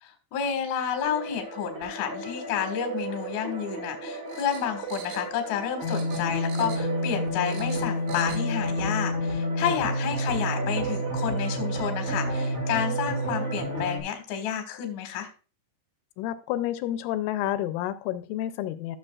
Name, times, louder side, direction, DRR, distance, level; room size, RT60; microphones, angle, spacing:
voice 1, 0.0-15.3, left 8 dB, 60° left, 5 dB, 2.0 m, -30 dB
sound 1, 1.0-14.0, equal, 65° right, 1.0 m, -30 dB
sound 2, 4.3-5.6 5.9-7.0 7.3-8.5 8.8-8.9, right 7 dB, 80° right, 3.9 m, -45 dB
voice 2, 16.2-19.0, left 13 dB, 85° left, 11 dB, 3.1 m, -30 dB
13.5 x 6.8 x 2.4 m, 0.34 s
omnidirectional pair, 5.8 m